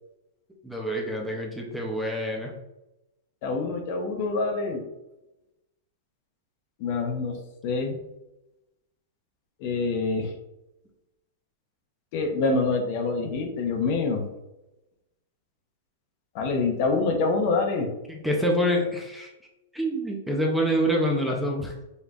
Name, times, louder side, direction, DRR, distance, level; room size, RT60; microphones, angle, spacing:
voice 1, 0.6-2.5 18.1-19.3 19.7-21.7, equal, ahead, -1 dB, 0.6 m, -26 dB
voice 2, 3.4-4.8 6.8-7.4 7.6-8.0 9.6-10.3 12.1-14.3 16.3-17.9, left 3 dB, 45° left, 4 dB, 0.7 m, -26 dB
5.2 x 3.1 x 2.4 m, 0.95 s
supercardioid pair, 155°, 0 cm